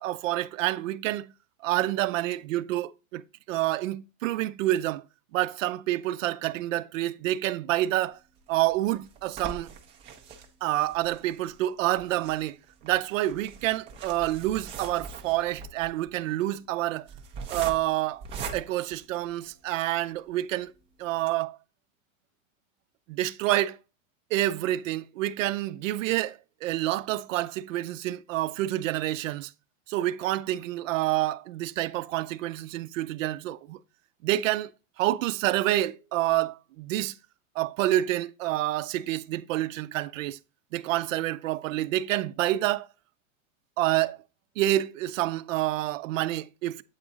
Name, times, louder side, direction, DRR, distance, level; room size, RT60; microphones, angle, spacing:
voice 1, 0.0-1.3 1.6-5.0 5.3-8.2 8.5-9.7 10.6-12.6 12.8-17.1 17.5-18.2 18.5-20.7 21.0-21.6 23.1-23.8 24.3-29.5 29.9-33.8 34.2-34.7 35.0-37.2 37.6-40.4 40.7-42.9 43.8-44.2 44.6-46.8, right 15 dB, 70° right, 0.5 m, -28 dB
sound 1, 8.4-19.7 20.3-20.4 20.7-20.8 21.1-21.3, right 5 dB, 15° right, 0.3 m, -42 dB
8.1 x 3.7 x 3.9 m
supercardioid pair, 140°, 40 cm